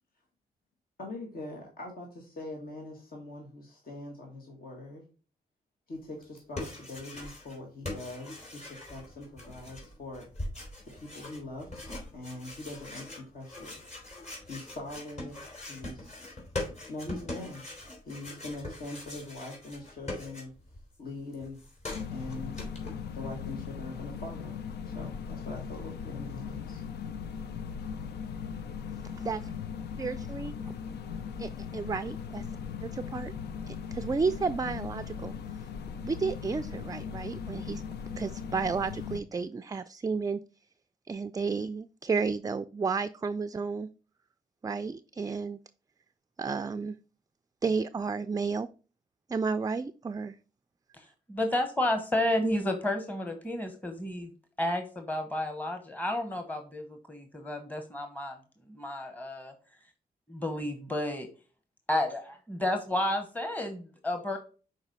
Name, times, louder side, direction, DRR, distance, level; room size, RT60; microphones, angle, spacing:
voice 1, 1.0-5.1 5.9-10.3 10.9-13.8 14.4-16.3 16.9-17.6 18.1-20.5 21.0-21.6 22.1-22.6 23.1-24.6 24.8-26.8, left 2 dB, 60° left, 0 dB, 1.6 m, -42 dB
sound 1, 6.2-7.6 7.8-20.8 21.1-22.9, left 2 dB, 45° left, 3.0 m, -42 dB
sound 2, 21.9-39.2, left 6 dB, 85° left, 0.5 m, -39 dB
voice 2, 29.2-29.5 30.0-30.6 31.4-32.4 32.8-33.3 33.7-35.4 36.0-37.8 38.2-40.4 41.1-43.9 44.6-45.6 46.4-47.0 47.6-48.7 49.3-50.4, right 5 dB, 20° right, 10 dB, 0.3 m, -32 dB
voice 3, 51.0-54.3 54.6-58.4 58.7-59.5 60.3-61.3 61.9-64.4, left 1 dB, 10° left, 6 dB, 1.1 m, -31 dB
5.9 x 4.1 x 4.0 m, 0.36 s
cardioid pair, 55°, 17 cm